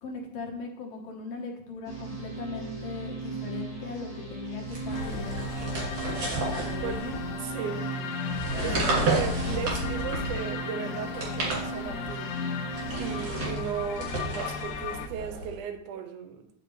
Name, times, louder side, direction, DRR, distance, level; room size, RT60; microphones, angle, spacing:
voice 1, 0.0-7.2 8.5-9.0, left 4 dB, 60° left, 2.1 m, -39 dB
sound 1, 1.8-13.6, right 5 dB, 35° right, 3.1 m, -37 dB
sound 2, 4.7-7.4 8.3-10.5 11.0-12.2 12.7-15.6, right 2 dB, 60° right, 3.2 m, -32 dB
sound 3, 4.9-15.1, left 8 dB, 90° left, 1.5 m, -37 dB
voice 2, 7.4-7.9 8.4-8.8 9.1-12.3 12.9-16.5, right 8 dB, 80° right, 2.1 m, -36 dB
9.8 x 5.1 x 3.1 m
omnidirectional pair, 3.6 m